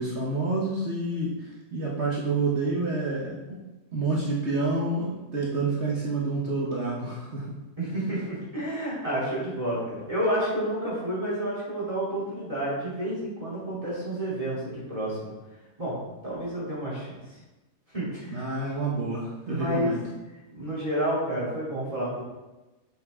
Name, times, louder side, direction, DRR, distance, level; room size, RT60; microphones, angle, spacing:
voice 1, 0.0-3.4 3.9-7.5 18.3-20.0, right 3 dB, 55° right, -4 dB, 1.4 m, -28 dB
voice 2, 7.8-15.3 15.8-16.0 16.2-17.1 17.9-18.5 19.5-20.0 20.5-22.2, right 1 dB, 25° right, -8 dB, 3.3 m, -30 dB
7.7 x 6.9 x 3.7 m, 1.1 s
omnidirectional pair, 1.5 m